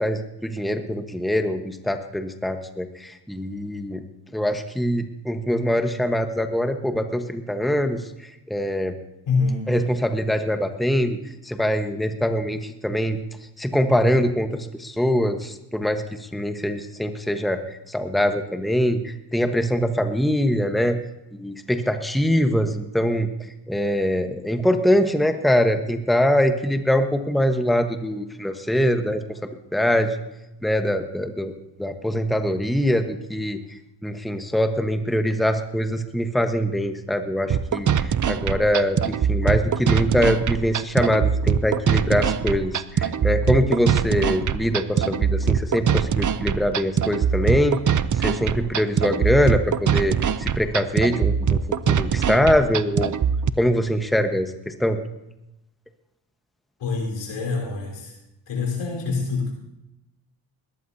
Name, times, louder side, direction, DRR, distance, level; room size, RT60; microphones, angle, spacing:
voice 1, 0.0-4.0 4.3-8.0 8.5-9.0 9.7-11.2 11.4-13.2 13.6-17.6 17.9-21.0 21.4-23.3 23.7-30.2 30.6-31.5 31.8-33.6 34.0-51.6 51.9-53.1 53.6-55.0, equal, ahead, 6 dB, 1.3 m, -23 dB
voice 2, 9.3-9.8 56.8-58.1 58.5-59.6, left 4 dB, 85° left, 0 dB, 4.6 m, -26 dB
sound 1, 37.5-53.5, right 7 dB, 40° right, 0.7 m, -22 dB
20.5 x 15.0 x 2.8 m, 0.89 s
supercardioid pair, 55°, 50 cm